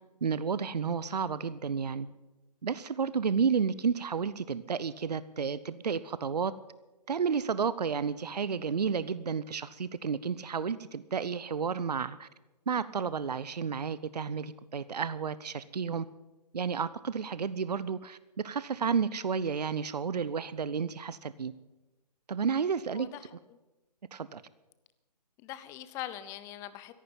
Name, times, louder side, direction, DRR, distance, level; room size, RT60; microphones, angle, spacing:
voice 1, 0.2-2.1 2.6-6.5 7.1-12.3 12.7-16.1 16.5-21.5 22.3-23.1 24.1-24.4, right 6 dB, 75° right, 17 dB, 0.7 m, -31 dB
voice 2, 22.9-23.6 25.4-26.9, left 13 dB, 15° left, 14 dB, 0.6 m, -42 dB
14.0 x 11.0 x 8.7 m, 1.1 s
figure-of-eight pair, 140°, 21 cm